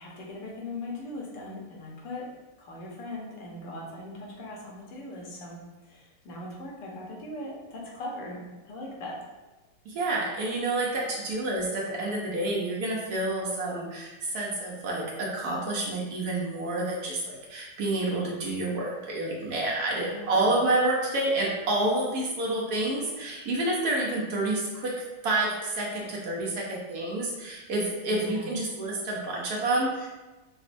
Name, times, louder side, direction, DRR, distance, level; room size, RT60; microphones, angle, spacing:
voice 1, 0.0-9.2 20.0-20.6 28.1-28.5, left 1 dB, 75° left, -3 dB, 1.4 m, -40 dB
voice 2, 9.9-24.9 25.2-30.2, right 2 dB, 65° right, -3 dB, 1.1 m, -29 dB
5.0 x 2.1 x 2.5 m, 1.1 s
omnidirectional pair, 1.9 m